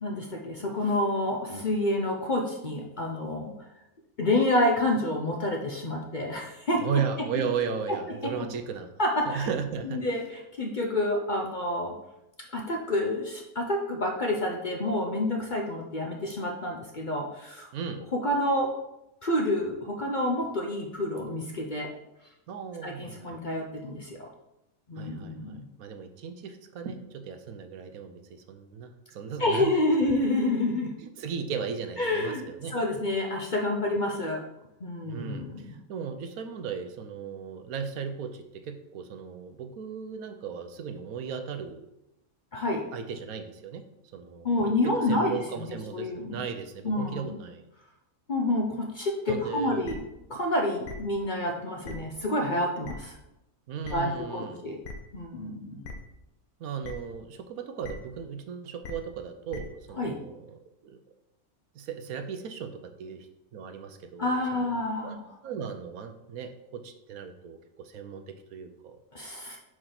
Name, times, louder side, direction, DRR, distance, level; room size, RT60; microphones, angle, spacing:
voice 1, 0.0-3.5 4.2-6.8 8.2-8.3 9.0-9.5 9.8-11.9 12.5-17.7 18.1-18.7 19.2-21.9 22.8-24.3 24.9-25.6 29.4-30.9 32.0-34.4 34.8-35.7 42.5-42.8 44.4-46.4 46.8-47.3 48.3-50.0 50.3-53.2 53.9-54.8 55.1-55.8 60.0-60.2 64.2-65.2 69.1-69.6, left 1 dB, 45° left, 1 dB, 0.7 m, -28 dB
voice 2, 6.8-8.9 9.3-10.0 17.7-18.0 22.5-23.4 25.0-29.7 31.0-32.7 35.0-41.9 42.9-43.8 44.1-47.6 49.3-49.9 53.7-54.6 55.7-55.8 56.6-61.0 61.7-64.7 65.0-65.1 65.4-69.0, right 6 dB, 75° right, 8 dB, 1.1 m, -36 dB
sound 1, 49.8-49.9 50.8-50.9 51.8-51.9 52.8-52.9 53.8-53.9 54.8-54.9 55.8-55.9 56.8-56.9 57.8-57.9 58.8-58.9 59.5-59.6, left 5 dB, 75° left, 1.3 m, -39 dB
5.0 x 4.7 x 5.8 m, 0.89 s
omnidirectional pair, 1.5 m